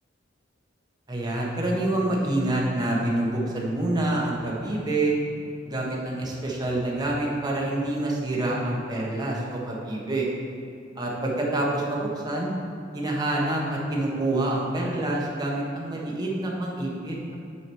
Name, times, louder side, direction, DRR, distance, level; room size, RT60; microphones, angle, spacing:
voice 1, 1.1-5.1 5.6-10.3 11.0-12.5 12.9-17.3, right 1 dB, 20° right, -3 dB, 1.2 m, -27 dB
8.4 x 4.9 x 4.6 m, 2.5 s
head